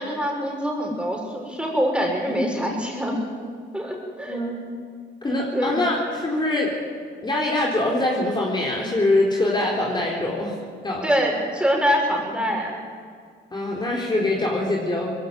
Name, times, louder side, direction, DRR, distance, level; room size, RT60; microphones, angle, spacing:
voice 1, 0.0-3.3 3.7-4.4 5.5-5.8 11.0-12.8, equal, 5° right, 0 dB, 6.4 m, -24 dB
voice 2, 4.3-4.6 5.2-6.7 7.2-10.6 10.8-11.0 13.5-15.1, left 2 dB, 20° left, -3 dB, 4.0 m, -23 dB
21.0 x 16.0 x 9.4 m, 2.1 s
cardioid pair, 90°, 20 cm